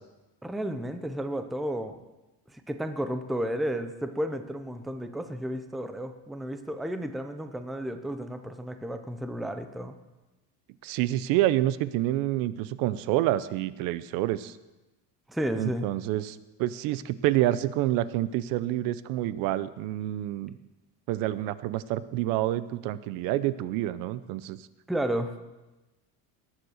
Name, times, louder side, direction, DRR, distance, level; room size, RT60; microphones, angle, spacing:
voice 1, 0.4-2.0 2.5-9.9 15.3-15.9 24.9-25.3, equal, ahead, 8 dB, 0.5 m, -32 dB
voice 2, 10.8-14.6 15.6-20.5 21.1-24.6, right 14 dB, 70° right, 16 dB, 0.7 m, -28 dB
18.5 x 7.6 x 6.4 m, 1.1 s
cardioid pair, 175°, 35 cm